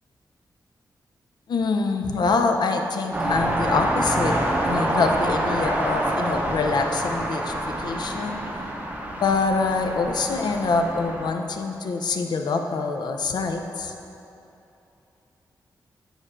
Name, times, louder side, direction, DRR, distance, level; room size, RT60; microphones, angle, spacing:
voice 1, 1.5-4.4 4.6-8.4 9.2-13.9, left 4 dB, 70° left, 4 dB, 0.4 m, -25 dB
sound 1, 3.1-11.3, right 1 dB, 20° right, 0.6 m, -27 dB
6.5 x 6.2 x 2.4 m, 2.9 s
wide cardioid pair, 140°, 8 cm